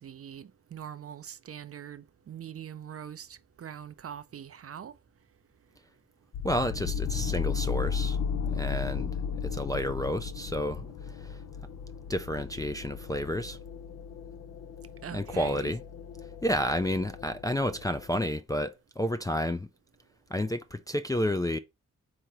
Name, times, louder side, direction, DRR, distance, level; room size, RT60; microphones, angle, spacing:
voice 1, 0.0-4.9 15.0-15.7, right 9 dB, 45° right, 0.5 m, -43 dB
sound 1, 6.3-18.3, left 6 dB, 65° left, 0.5 m, -35 dB
voice 2, 6.4-8.2 8.4-11.4 12.1-13.6 15.1-15.8 16.4-19.7 20.3-21.6, left 1 dB, 10° left, 0.3 m, -31 dB
3.7 x 3.0 x 4.6 m
cardioid pair, 70°, 32 cm